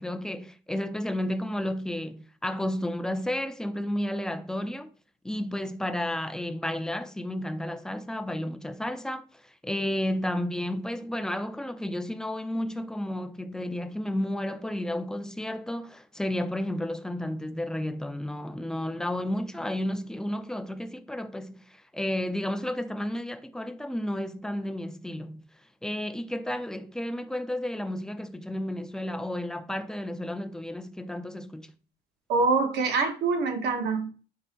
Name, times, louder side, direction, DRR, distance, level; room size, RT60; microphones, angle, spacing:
voice 1, 0.0-4.9 5.2-25.4 25.8-31.7, left 1 dB, 5° left, 0.3 m, -32 dB
voice 2, 32.3-34.1, right 4 dB, 80° right, 1.1 m, -25 dB
4.5 x 2.1 x 3.9 m
cardioid pair, 110°, 17 cm